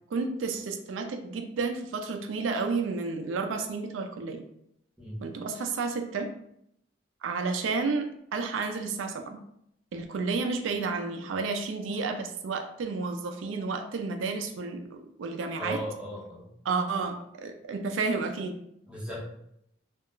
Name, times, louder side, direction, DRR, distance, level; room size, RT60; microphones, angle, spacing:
voice 1, 0.1-4.4 5.2-6.4 7.2-9.4 9.9-15.8 16.7-18.6, right 4 dB, 85° right, 5 dB, 0.4 m, -31 dB
voice 2, 15.6-16.5 18.9-19.2, equal, 5° right, -5 dB, 0.7 m, -36 dB
2.3 x 2.1 x 3.6 m, 0.74 s
head